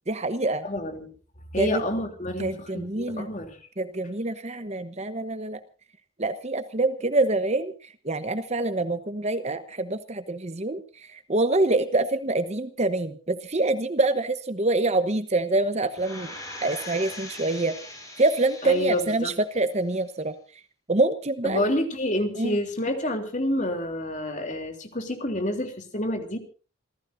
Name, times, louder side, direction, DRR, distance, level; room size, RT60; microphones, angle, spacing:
voice 1, 0.1-0.6 1.6-1.8 2.4-3.3 3.8-5.6 6.2-7.7 8.0-16.3 16.6-17.7 18.2-20.4 20.9-21.6 22.4-22.6, right 2 dB, 30° right, 10 dB, 1.0 m, -25 dB
voice 2, 0.6-1.1 1.5-3.6 18.6-19.3 21.4-26.4, left 1 dB, 35° left, 5 dB, 3.2 m, -28 dB
sound 1, 15.9-19.3 19.8-19.9, left 1 dB, 15° left, 7.5 m, -40 dB
28.5 x 15.5 x 2.7 m, 0.36 s
head